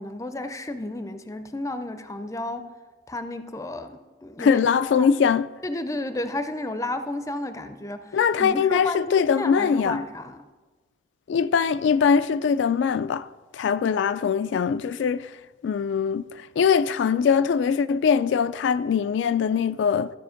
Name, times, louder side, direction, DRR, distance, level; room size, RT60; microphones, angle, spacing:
voice 1, 0.0-2.6 3.1-4.7 4.9-5.1 5.6-10.4, left 2 dB, 15° left, 0.5 m, -32 dB
voice 2, 4.4-5.5 8.1-10.0 11.3-13.3 13.5-15.3 15.6-20.1, left 6 dB, 80° left, 0.3 m, -22 dB
14.0 x 5.1 x 5.0 m
head